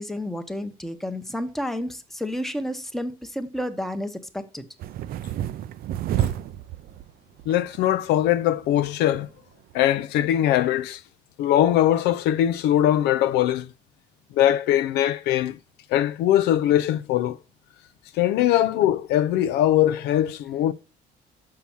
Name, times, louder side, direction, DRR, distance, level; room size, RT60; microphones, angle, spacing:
voice 1, 0.0-4.7, equal, ahead, 0.9 m, -31 dB
sound 1, 4.8-7.1 7.4-7.9 8.3-8.4 8.6-9.3 9.7-9.8, right 11 dB, 60° right, 0.5 m, -30 dB
voice 2, 7.5-9.3 9.7-11.0 11.4-13.7 14.3-15.6 15.9-17.4 18.1-20.7, left 12 dB, 85° left, 0.5 m, -21 dB
6.2 x 5.7 x 7.1 m
cardioid pair, 110°, 17 cm